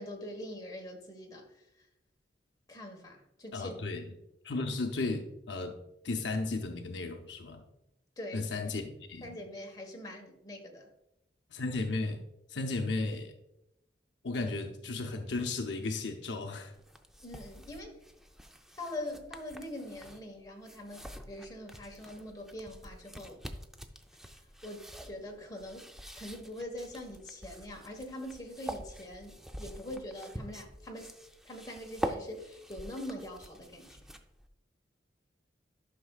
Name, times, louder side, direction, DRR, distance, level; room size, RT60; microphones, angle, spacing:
voice 1, 0.0-1.7 2.7-3.7 8.2-8.7 9.2-10.9 17.2-18.0 18.8-21.0 21.3-23.4 24.6-25.9 26.1-31.1 31.4-34.0, left 1 dB, 20° left, 1 dB, 1.3 m, -43 dB
voice 2, 3.5-4.1 4.4-5.8 6.0-7.6 8.3-9.4 11.5-12.2 12.5-13.3 14.2-16.7, left 3 dB, 70° left, 4 dB, 0.7 m, -34 dB
sound 1, 16.7-34.5, equal, ahead, 0.4 m, -45 dB
11.5 x 5.9 x 2.3 m, 0.86 s
head